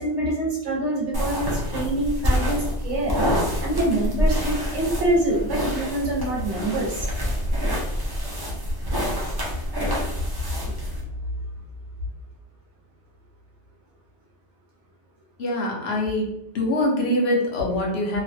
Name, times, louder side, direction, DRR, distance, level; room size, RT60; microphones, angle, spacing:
voice 1, 0.0-7.1, right 1 dB, 90° right, -3 dB, 1.1 m, -26 dB
sound 1, 1.1-11.0, equal, 30° right, 0.5 m, -26 dB
voice 2, 15.4-16.3 16.5-18.2, left 1 dB, 70° left, -2 dB, 1.0 m, -23 dB
3.1 x 2.1 x 2.6 m, 0.88 s
omnidirectional pair, 1.2 m